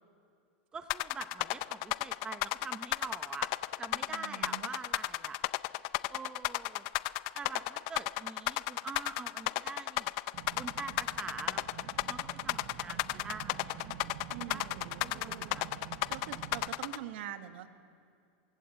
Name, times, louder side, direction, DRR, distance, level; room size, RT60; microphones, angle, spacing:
voice 1, 0.7-3.5 3.8-5.4 6.1-6.9 7.3-10.1 10.5-15.7, right 5 dB, 15° right, 9 dB, 0.8 m, -45 dB
sound 1, 0.9-17.0, left 20 dB, 40° left, 0.5 m, -33 dB
voice 2, 4.1-4.7 14.3-15.6 16.1-17.7, right 12 dB, 60° right, 8 dB, 1.6 m, -44 dB
sound 2, 10.3-16.7, right 11 dB, 35° right, 0.9 m, -48 dB
23.5 x 23.0 x 8.1 m, 2.4 s
supercardioid pair, 165°, 7 cm